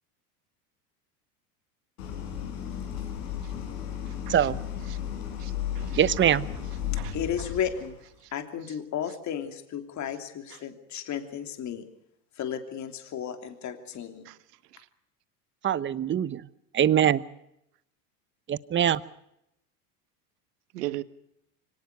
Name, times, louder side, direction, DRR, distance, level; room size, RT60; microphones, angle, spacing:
Idling, 2.0-8.1, left 9 dB, 75° left, 6.7 m, -34 dB
voice 1, 5.4-6.2 7.0-7.1 14.3-14.4 20.7-21.0, right 17 dB, 80° right, 1.3 m, -37 dB
voice 2, 6.0-6.5 15.6-16.4 16.7-17.2 18.5-19.0, right 10 dB, 25° right, 1.0 m, -23 dB
voice 3, 7.1-8.0 8.3-11.8 12.4-14.2, left 8 dB, 35° left, 3.1 m, -34 dB
24.5 x 18.5 x 6.7 m
hypercardioid pair, 105°, 47 cm